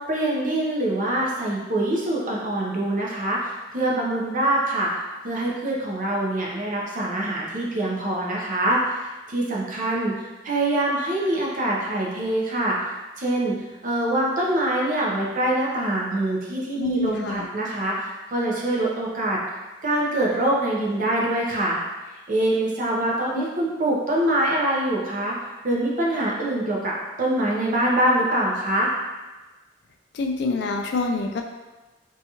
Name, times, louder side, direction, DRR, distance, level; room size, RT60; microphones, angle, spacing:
voice 1, 0.0-12.8 13.2-13.6 13.8-19.4 19.8-21.8 22.3-25.4 25.6-28.9, right 1 dB, 50° right, -3 dB, 0.6 m, -24 dB
voice 2, 16.8-17.5 23.3-23.4 30.1-31.4, left 3 dB, 65° left, 3 dB, 0.3 m, -26 dB
2.7 x 2.3 x 2.8 m, 1.2 s
head